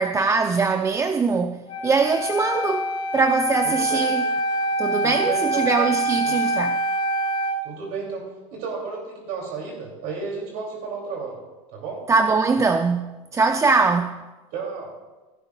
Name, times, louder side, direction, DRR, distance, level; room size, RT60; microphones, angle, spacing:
voice 1, 0.0-4.2 4.8-6.8 12.1-14.2, right 4 dB, 20° right, 0.4 m, -22 dB
Wind instrument woodwind instrument, 1.7-7.6, right 1 dB, 35° left, 1.6 m, -25 dB
voice 2, 3.6-4.0 5.0-5.7 6.2-6.3 7.6-11.4 11.7-12.0 14.5-14.9, right 4 dB, 65° right, 2.8 m, -32 dB
16.0 x 11.5 x 2.4 m
supercardioid pair, 105°, 16 cm